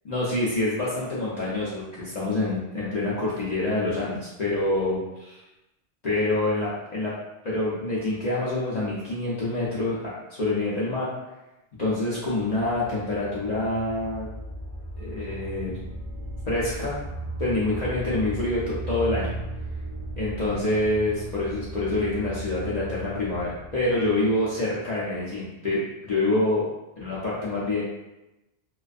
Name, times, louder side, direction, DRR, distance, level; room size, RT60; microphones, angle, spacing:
voice 1, 0.1-5.4 6.0-7.1 7.4-10.0 10.3-11.1 11.8-14.3 15.0-15.8 16.5-17.0 17.4-19.3 20.2-26.6 27.0-27.8, left 2 dB, 50° left, -8 dB, 0.5 m, -26 dB
sound 1, 12.4-24.8, right 1 dB, 40° right, 0.6 m, -36 dB
2.4 x 2.3 x 2.4 m, 0.98 s
omnidirectional pair, 1.1 m